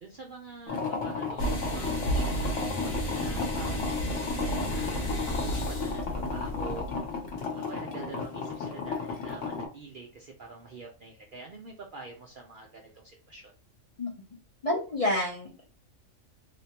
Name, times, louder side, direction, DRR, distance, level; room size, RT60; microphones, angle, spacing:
voice 1, 0.0-2.7 3.1-5.1 5.4-6.9 7.5-13.5, right 4 dB, 60° right, 1 dB, 0.5 m, -45 dB
sound 1, 0.7-9.6, left 5 dB, 65° left, 1.1 m, -34 dB
sound 2, 1.4-7.3, right 1 dB, 85° left, 1.4 m, -32 dB
voice 2, 14.6-15.6, left 1 dB, 45° left, -4 dB, 0.5 m, -28 dB
3.4 x 2.8 x 2.8 m, 0.35 s
omnidirectional pair, 1.4 m